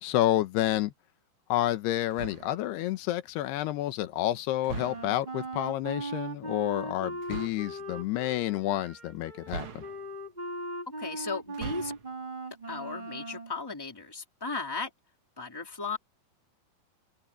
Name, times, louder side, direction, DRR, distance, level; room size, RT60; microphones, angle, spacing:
voice 1, 0.0-0.9 1.5-9.8, left 14 dB, 85° left, 3.1 m, -29 dB
sound 1, 2.1-2.7 4.6-5.3 7.2-7.7 9.5-10.3 11.4-12.1, right 5 dB, 70° right, 1.2 m, -41 dB
Wind instrument woodwind instrument, 4.7-13.5, right 2 dB, 45° right, 0.6 m, -39 dB
voice 2, 11.0-11.9 12.7-14.9 15.4-16.0, left 4 dB, 5° left, 2.8 m, -36 dB
omnidirectional pair, 4.6 m